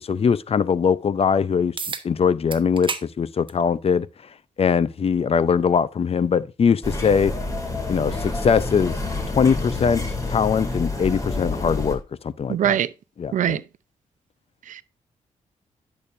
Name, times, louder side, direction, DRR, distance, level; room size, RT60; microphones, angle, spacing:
voice 1, 0.0-1.7 2.0-4.1 4.6-7.3 7.9-9.0 9.4-10.0 10.3-12.8 13.2-13.6, left 6 dB, 50° left, 0.6 m, -21 dB
sound 1, 1.8-2.1 2.5-3.1 3.5-3.6 4.7-4.8 9.7-9.8, right 4 dB, 40° right, 1.1 m, -30 dB
sound 2, 6.8-12.0, left 3 dB, 25° left, 2.5 m, -28 dB
voice 2, 12.5-12.9 13.3-13.6 14.7-14.8, right 10 dB, 75° right, 0.5 m, -22 dB
11.0 x 6.7 x 2.6 m
cardioid pair, 65°, 13 cm